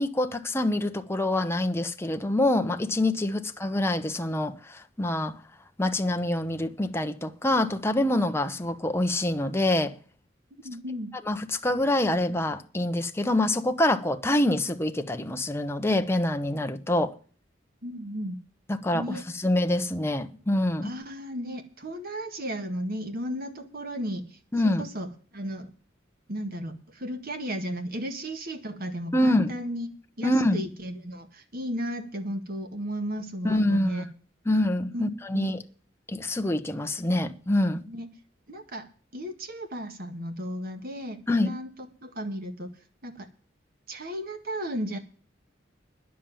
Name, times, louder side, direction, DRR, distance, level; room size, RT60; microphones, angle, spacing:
voice 1, 0.0-5.3 5.8-9.9 11.3-17.1 18.7-20.9 24.5-24.8 29.1-29.5 30.2-30.6 33.4-33.9 34.5-35.6 36.1-37.8 41.3-41.5, left 1 dB, 15° left, 0.9 m, -26 dB
voice 2, 10.6-11.1 17.8-18.4 18.9-19.2 20.8-24.4 24.6-25.7 26.3-29.9 30.2-34.1 34.9-35.5 37.9-38.1 38.5-38.9 39.1-41.7 42.0-42.7 43.0-43.3 43.9-45.0, equal, 50° right, 1.7 m, -34 dB
10.0 x 7.3 x 8.8 m
head